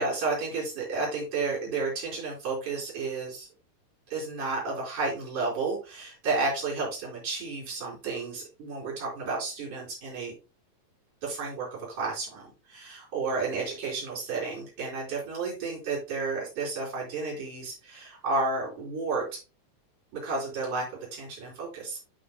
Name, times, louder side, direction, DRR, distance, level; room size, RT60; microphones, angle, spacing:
voice 1, 0.0-3.5 4.1-10.3 11.2-19.4 20.1-22.0, right 3 dB, 65° right, -8 dB, 5.2 m, -32 dB
12.0 x 5.6 x 2.3 m, 0.31 s
omnidirectional pair, 3.8 m